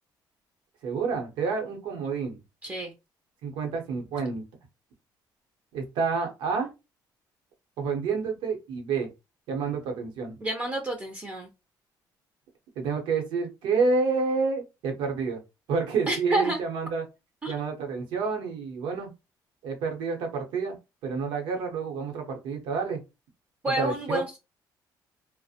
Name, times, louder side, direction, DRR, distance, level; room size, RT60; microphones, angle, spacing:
voice 1, 0.8-2.4 3.4-4.4 5.7-6.7 7.8-9.1 9.5-10.4 12.8-15.4 15.7-17.0 17.5-19.1 19.6-20.8 21.0-23.0 23.8-24.2, right 4 dB, 85° right, 0.8 m, -29 dB
voice 2, 2.6-2.9 10.4-11.5 16.1-16.6 17.4-17.5 23.6-24.4, right 2 dB, 20° right, 0.3 m, -29 dB
2.4 x 2.0 x 2.7 m
cardioid pair, 165°, 8 cm